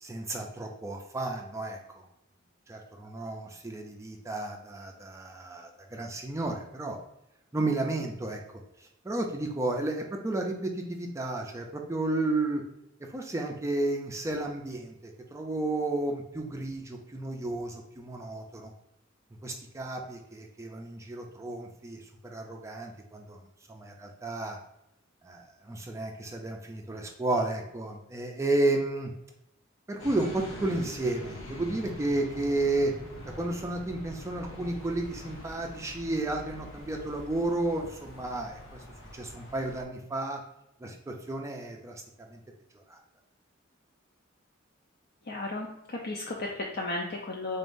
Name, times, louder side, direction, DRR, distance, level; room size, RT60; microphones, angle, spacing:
voice 1, 0.0-1.8 2.7-7.0 7.5-8.4 8.8-12.6 13.1-18.7 19.4-23.4 23.7-24.6 25.2-29.1 29.9-32.9 33.3-38.8 39.1-40.4 40.8-42.0 42.3-42.4 42.9-43.0, right 2 dB, 15° right, 2 dB, 0.4 m, -32 dB
sound 1, 30.0-39.8, left 1 dB, 75° left, 0.9 m, -44 dB
voice 2, 45.3-47.6, left 2 dB, 55° left, -1 dB, 0.5 m, -34 dB
4.0 x 3.6 x 2.5 m, 0.84 s
head